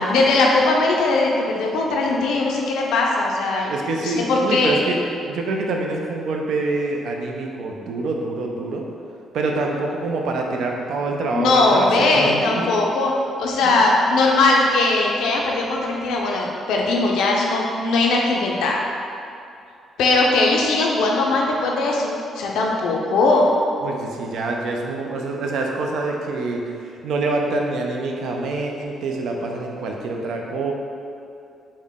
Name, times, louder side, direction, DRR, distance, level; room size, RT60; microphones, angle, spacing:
voice 1, 0.1-4.8 11.3-13.1 13.4-18.8 20.0-23.5, left 2 dB, 85° left, -1 dB, 0.4 m, -19 dB
voice 2, 3.7-8.9 9.3-12.7 13.6-13.8 23.8-30.7, right 3 dB, 75° right, 1 dB, 0.4 m, -26 dB
3.6 x 2.1 x 3.5 m, 2.5 s
cardioid pair, 90°, 0 cm